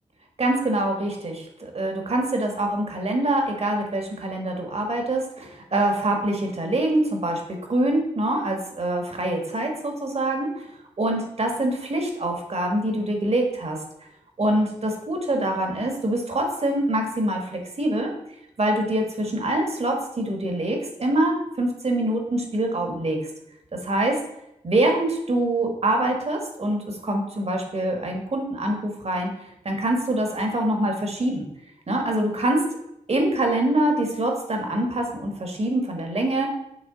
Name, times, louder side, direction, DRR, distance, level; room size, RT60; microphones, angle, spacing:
voice 1, 0.4-10.6 11.0-13.8 14.4-18.1 18.6-23.2 23.8-24.2 24.6-29.3 29.6-31.4 31.9-32.6 33.1-36.5, right 1 dB, 50° right, 2 dB, 1.4 m, -25 dB
8.6 x 3.2 x 3.9 m, 0.81 s
cardioid pair, 45°, 13 cm